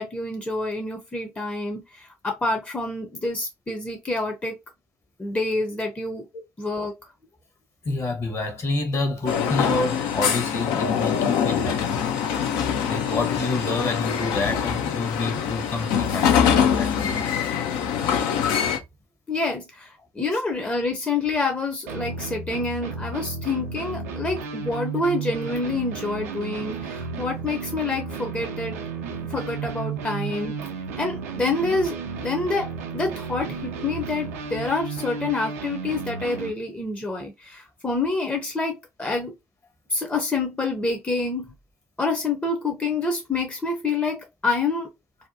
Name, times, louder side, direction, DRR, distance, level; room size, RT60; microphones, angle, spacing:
voice 1, 0.0-4.6 5.2-6.3 6.6-6.9 19.3-28.8 29.2-30.6 31.0-39.3 39.9-41.5 42.0-44.9, left 3 dB, 15° left, 0.6 m, -27 dB
voice 2, 7.8-12.0 12.9-17.2 20.3-20.4 30.0-30.1, left 2 dB, 40° left, 1.0 m, -28 dB
sound 1, 9.3-18.8, left 8 dB, 70° left, 0.5 m, -24 dB
sound 2, 21.9-36.5, right 5 dB, 80° right, 0.4 m, -33 dB
2.6 x 2.2 x 2.6 m
hypercardioid pair, 50°, 8 cm